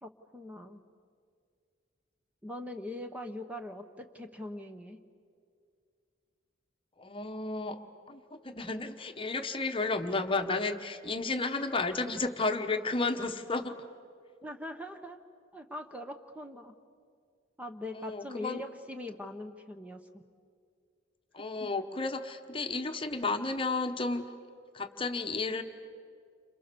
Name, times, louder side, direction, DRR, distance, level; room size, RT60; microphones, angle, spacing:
voice 1, 0.0-0.8 2.4-5.0 14.4-15.2 15.5-16.7 17.6-20.2 21.6-21.7, left 1 dB, 5° right, 6 dB, 1.0 m, -42 dB
voice 2, 7.0-7.8 8.1-13.8 17.9-18.6 21.3-24.3 24.7-25.6, left 3 dB, 25° left, 6 dB, 1.2 m, -32 dB
29.5 x 27.0 x 6.9 m, 2.2 s
head